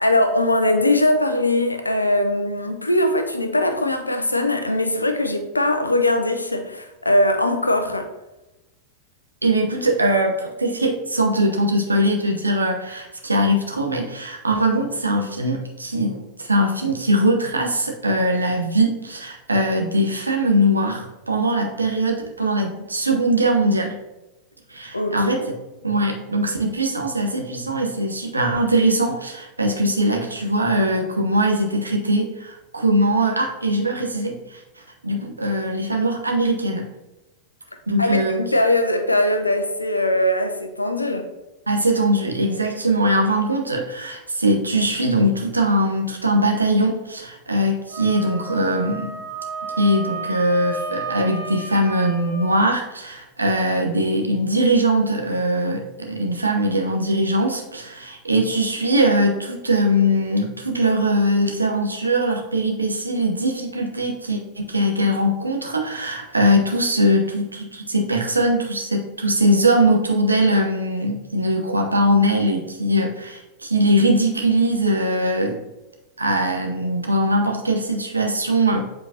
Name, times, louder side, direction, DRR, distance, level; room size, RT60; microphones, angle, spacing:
voice 1, 0.0-8.1 24.9-25.5 38.0-41.3, left 1 dB, 85° left, 0.6 m, -21 dB
voice 2, 9.4-24.0 24.7-25.6 25.8-34.6 35.0-36.9 37.9-38.4 41.7-49.2 49.8-75.6 76.2-78.9, right 1 dB, 80° right, 1.0 m, -21 dB
Wind instrument woodwind instrument, 47.9-52.7, right 3 dB, 50° right, 1.4 m, -33 dB
7.7 x 4.3 x 2.8 m
figure-of-eight pair, 90°, 0 cm